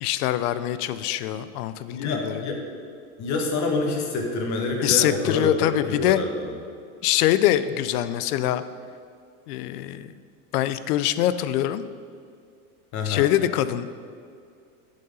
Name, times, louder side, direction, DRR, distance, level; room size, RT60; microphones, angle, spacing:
voice 1, 0.0-2.4 4.8-6.2 7.0-8.6 9.5-10.1 10.5-11.8 13.0-14.1, left 13 dB, 80° left, 13 dB, 0.5 m, -24 dB
voice 2, 1.9-2.6 3.2-6.5 12.9-13.3, left 3 dB, 40° left, 2 dB, 1.2 m, -27 dB
8.3 x 3.9 x 5.4 m, 2.3 s
supercardioid pair, 125°, 45 cm